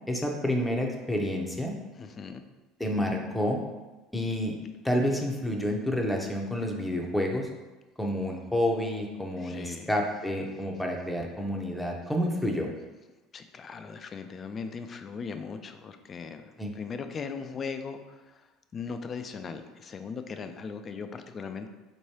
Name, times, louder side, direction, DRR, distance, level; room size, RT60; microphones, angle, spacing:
voice 1, 0.1-1.7 2.8-3.6 4.1-4.5 4.8-7.5 8.0-12.7 16.6-16.7, left 1 dB, 5° left, 1 dB, 0.7 m, -29 dB
voice 2, 1.9-2.4 9.4-9.9 13.3-21.7, left 5 dB, 35° left, 8 dB, 0.4 m, -39 dB
4.4 x 3.1 x 2.8 m, 1.1 s
hypercardioid pair, 75°, 0 cm